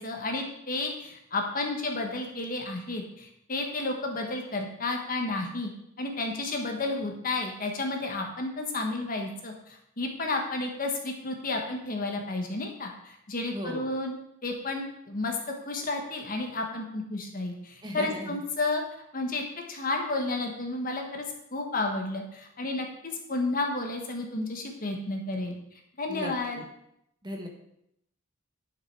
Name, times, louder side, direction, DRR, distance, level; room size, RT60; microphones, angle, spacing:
voice 1, 0.0-5.7 6.0-14.1 14.4-15.4 15.7-18.8 19.1-21.2 21.5-25.5 26.0-26.6, left 2 dB, 40° left, 3 dB, 1.4 m, -32 dB
voice 2, 13.5-13.9 17.8-18.4 26.1-26.6 27.2-27.5, equal, 20° right, 2 dB, 1.3 m, -37 dB
11.0 x 5.8 x 4.8 m, 0.77 s
head